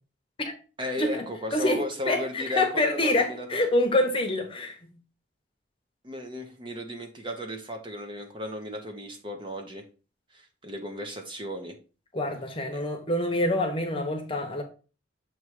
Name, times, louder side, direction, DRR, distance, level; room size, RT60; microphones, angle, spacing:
voice 1, 0.8-3.5 6.0-9.8 10.3-11.8 12.7-12.8, left 1 dB, 25° right, 0.9 m, -35 dB
voice 2, 1.5-4.9 12.1-14.6, left 1 dB, 25° left, 0.9 m, -26 dB
7.1 x 3.1 x 4.7 m
head